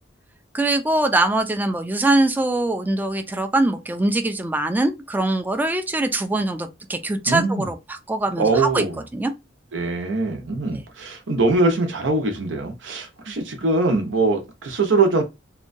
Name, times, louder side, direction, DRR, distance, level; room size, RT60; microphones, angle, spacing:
voice 1, 0.5-7.8 8.1-8.8 9.1-9.3, right 2 dB, 10° right, 0.3 m, -22 dB
voice 2, 7.3-7.7 8.4-9.0 9.7-15.2, right 3 dB, 90° right, 0.7 m, -22 dB
2.8 x 2.2 x 2.5 m
head